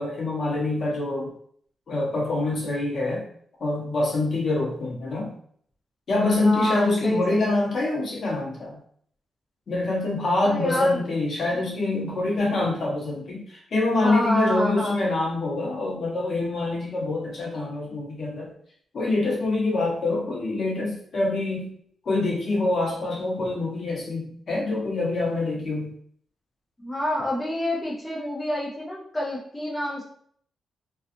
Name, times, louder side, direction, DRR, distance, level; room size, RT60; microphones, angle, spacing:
voice 1, 0.0-1.3 1.9-3.2 3.6-5.3 6.1-8.8 9.7-18.5 18.9-21.7 22.0-25.9, left 2 dB, 55° left, -2 dB, 0.9 m, -25 dB
voice 2, 6.4-7.5 10.4-11.1 14.0-15.0 26.8-30.0, left 1 dB, 15° left, -5 dB, 0.6 m, -27 dB
2.6 x 2.3 x 2.5 m, 0.62 s
cardioid pair, 110°, 0 cm